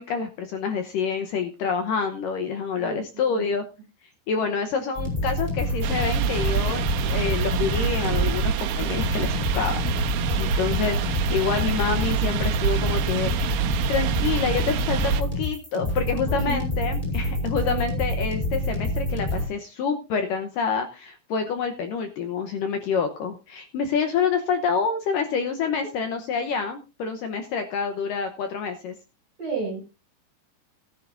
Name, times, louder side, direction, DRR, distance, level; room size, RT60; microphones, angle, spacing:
voice 1, 0.0-3.6 4.3-9.8 10.4-13.5 13.9-29.0, left 5 dB, 75° left, 6 dB, 2.1 m, -27 dB
sound 1, 5.0-19.5, left 1 dB, 10° left, 6.2 m, -27 dB
sound 2, 5.8-15.2, right 8 dB, 85° right, 3.0 m, -27 dB
voice 2, 16.3-16.6 17.6-17.8 29.4-29.8, right 4 dB, 30° right, 3 dB, 7.2 m, -32 dB
18.0 x 11.0 x 2.6 m, 0.29 s
omnidirectional pair, 5.0 m